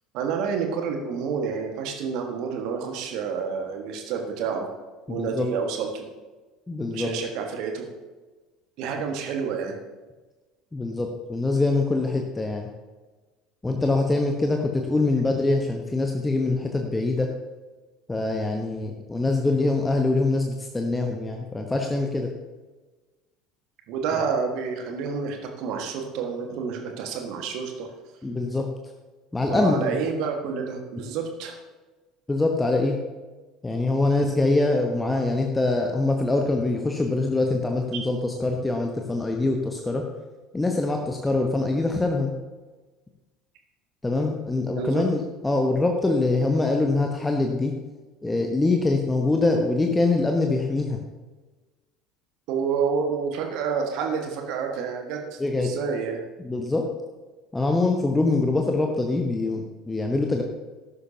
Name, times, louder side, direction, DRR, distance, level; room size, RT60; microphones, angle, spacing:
voice 1, 0.1-4.7 5.1-6.1 6.9-7.9 8.8-9.8 23.9-27.9 29.5-31.6 44.7-45.0 52.5-56.2, right 6 dB, 55° right, 3 dB, 1.6 m, -29 dB
voice 2, 5.1-5.5 6.7-7.1 10.7-12.7 13.6-17.3 18.1-22.3 24.1-24.3 28.2-28.7 29.3-30.0 32.3-33.0 33.6-40.0 40.5-42.3 44.0-47.7 48.2-51.0 55.4-55.7 56.4-56.9 57.5-60.4, left 2 dB, 10° left, 2 dB, 1.1 m, -24 dB
14.0 x 11.5 x 2.9 m, 1.3 s
figure-of-eight pair, 65°, 0 cm